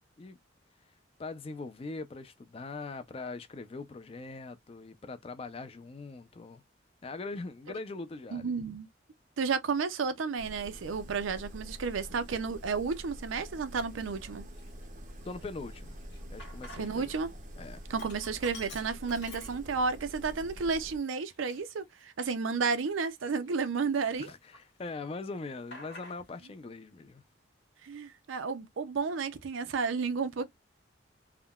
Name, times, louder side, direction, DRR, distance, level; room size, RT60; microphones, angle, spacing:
voice 1, 1.2-6.6 7.0-8.5 15.2-16.0 16.3-17.1 17.6-17.9 24.2-27.2, left 3 dB, 30° left, 0.3 m, -41 dB
voice 2, 8.3-8.9 9.4-14.5 16.8-17.3 17.9-24.3 27.8-30.5, right 5 dB, 90° right, 0.5 m, -32 dB
sound 1, 10.4-21.0, equal, 40° right, 0.5 m, -46 dB
Sink (filling or washing), 11.9-12.1 12.7-13.3 13.6-13.7 14.0-17.2 17.5-20.0 20.5-20.6 21.3-23.8 24.1-24.9 25.2-26.5, left 2 dB, 65° left, 1.2 m, -51 dB
3.5 x 2.2 x 2.2 m
head